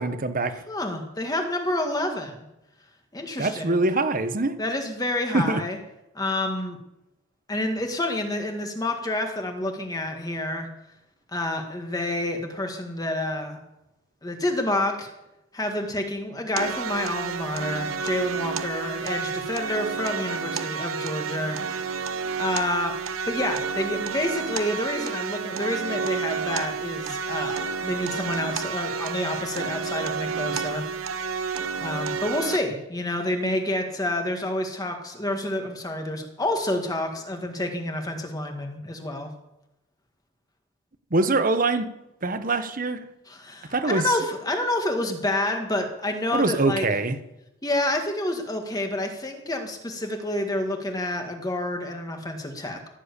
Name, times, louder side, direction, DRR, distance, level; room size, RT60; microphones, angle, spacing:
voice 1, 0.0-0.5 3.4-4.6 5.3-5.6 41.1-41.9 42.2-43.0 43.7-44.1 46.3-47.2, right 2 dB, 40° right, 10 dB, 1.1 m, -24 dB
voice 2, 0.7-2.5 3.1-3.8 4.6-5.8 6.1-6.8 7.5-10.7 11.3-13.6 14.2-15.1 15.5-22.0 22.4-23.0 23.3-30.9 31.8-39.3 43.3-46.9 47.6-52.9, left 1 dB, 20° left, 4 dB, 1.8 m, -28 dB
sound 1, 16.6-32.6, right 5 dB, 90° right, 1.0 m, -30 dB
16.0 x 7.7 x 8.4 m, 0.91 s
head